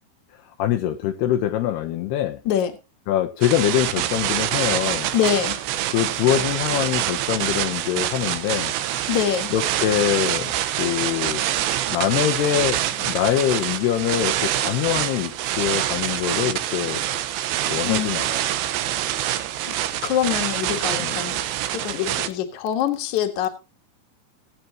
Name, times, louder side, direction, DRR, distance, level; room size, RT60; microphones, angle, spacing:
voice 1, 0.6-2.4 3.1-5.1 5.9-8.7 9.5-11.4 11.9-17.0 17.6-18.4 21.0-21.2, left 11 dB, 75° left, 2.9 m, -24 dB
sound 1, 3.4-22.3, right 12 dB, 85° right, 3.2 m, -25 dB
voice 2, 5.1-5.6 9.1-9.5 17.8-18.1 19.7-19.8 20.0-21.4 21.7-23.5, left 10 dB, 55° left, 2.5 m, -24 dB
21.5 x 8.6 x 2.9 m
omnidirectional pair, 5.0 m